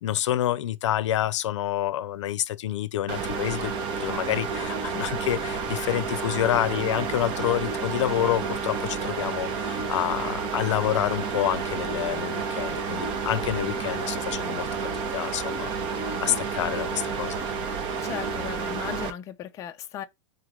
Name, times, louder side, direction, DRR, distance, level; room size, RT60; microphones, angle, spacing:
voice 1, 0.0-3.7 4.0-14.7 15.1-17.4, left 12 dB, 80° left, 0.5 m, -28 dB
sound 1, 3.1-19.1, right 5 dB, 35° right, 0.7 m, -30 dB
voice 2, 18.0-20.0, left 10 dB, 20° left, 0.4 m, -36 dB
3.9 x 3.1 x 3.6 m
supercardioid pair, 150°, 15 cm